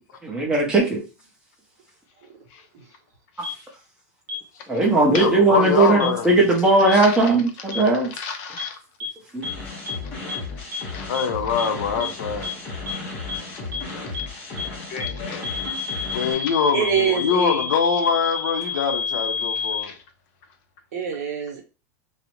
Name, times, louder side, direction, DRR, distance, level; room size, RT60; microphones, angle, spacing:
voice 1, 0.2-1.0 4.7-8.1 9.3-9.4, right 2 dB, 10° right, 0.6 m, -18 dB
voice 2, 3.3-3.7 6.9-7.3 8.0-8.8 10.6-11.1 12.4-12.5 13.4-14.5 14.9-15.5 16.3-16.4 19.6-20.0, left 6 dB, 40° left, 0.5 m, -38 dB
sound 1, 3.4-3.5 4.3-4.4 5.1-5.2 6.0-6.1 6.9-7.0 7.7-7.8 8.6-8.7 9.0-9.1 9.4-9.5 9.9-10.0 10.3-10.4 10.7-10.8 11.1-11.2 11.6-11.7 12.0-12.1 12.4-12.5 12.9-13.0 13.3-13.4 13.7-13.8 14.1-14.2 14.6-14.7 15.0-15.1 15.4-19.8, left 4 dB, 35° right, 0.9 m, -29 dB
voice 3, 4.8-6.3 11.1-12.5 12.9-13.0 16.1-19.9, left 6 dB, 85° left, 0.6 m, -24 dB
sound 2, 9.4-16.3, left 3 dB, 20° left, 0.8 m, -34 dB
voice 4, 16.7-17.7 20.9-21.6, right 7 dB, 60° right, 0.9 m, -24 dB
2.4 x 2.0 x 2.9 m
supercardioid pair, 165°, 10 cm